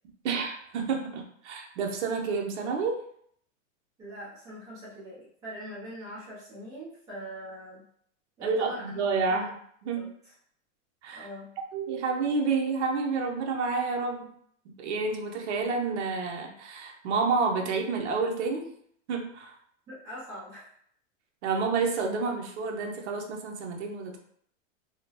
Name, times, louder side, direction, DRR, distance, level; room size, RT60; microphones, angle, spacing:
voice 1, 0.2-3.0 8.4-10.1 11.0-11.3 11.7-14.3 14.6-18.7 19.1-19.5 21.4-24.2, right 4 dB, 60° right, 2 dB, 0.8 m, -29 dB
voice 2, 4.0-7.8 8.4-9.0 9.3-9.4 9.9-10.3 11.1-11.5 19.9-20.7, equal, 10° right, -9 dB, 0.5 m, -42 dB
3.6 x 2.1 x 2.9 m, 0.65 s
supercardioid pair, 165°, 40 cm